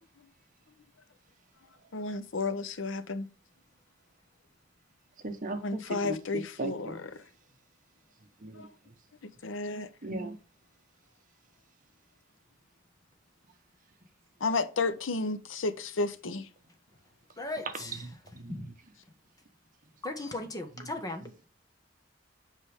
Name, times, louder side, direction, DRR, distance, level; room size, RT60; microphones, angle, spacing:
voice 1, 1.9-3.3 5.6-7.2 8.5-8.7 9.2-9.9 14.4-16.5, left 3 dB, 85° left, 0.8 m, -32 dB
voice 2, 5.2-6.2 6.6-7.0 8.4-8.7 10.0-10.4 18.0-18.5, right 2 dB, 40° right, 1.0 m, -37 dB
voice 3, 17.4-18.1 18.4-18.7 20.0-21.5, left 2 dB, 20° left, 1.2 m, -37 dB
7.5 x 5.0 x 3.5 m
head